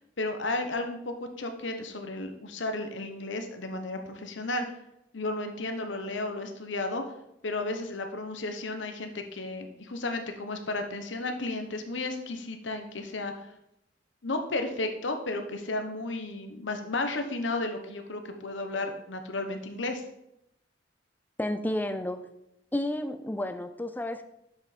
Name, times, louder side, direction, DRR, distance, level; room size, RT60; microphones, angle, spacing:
voice 1, 0.2-4.7 5.1-7.0 7.4-13.5 14.2-20.0, left 2 dB, 85° left, 6 dB, 1.0 m, -33 dB
voice 2, 21.4-22.3 22.7-24.2, left 1 dB, 10° left, 9 dB, 0.4 m, -31 dB
7.2 x 6.2 x 4.2 m, 0.83 s
head